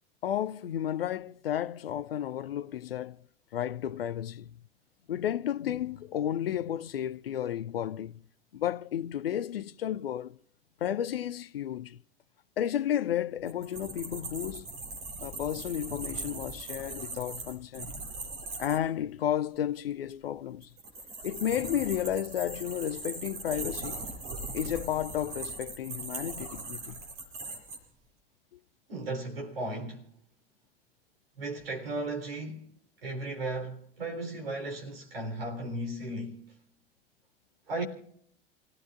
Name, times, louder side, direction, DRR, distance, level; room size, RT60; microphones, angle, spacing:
voice 1, 0.2-3.2 3.5-4.6 5.1-8.2 8.5-10.4 10.8-12.0 12.6-14.7 15.2-17.9 18.6-20.7 21.2-24.0 24.5-27.0, left 10 dB, 75° left, 0.5 m, -32 dB
sound 1, 13.5-18.8 20.6-27.8, right 3 dB, 50° right, 7.4 m, -40 dB
voice 2, 28.9-30.0 31.4-32.7 33.0-36.4 37.7-37.8, right 2 dB, 75° right, 3.9 m, -35 dB
29.5 x 17.5 x 2.5 m
figure-of-eight pair, 75°, 29 cm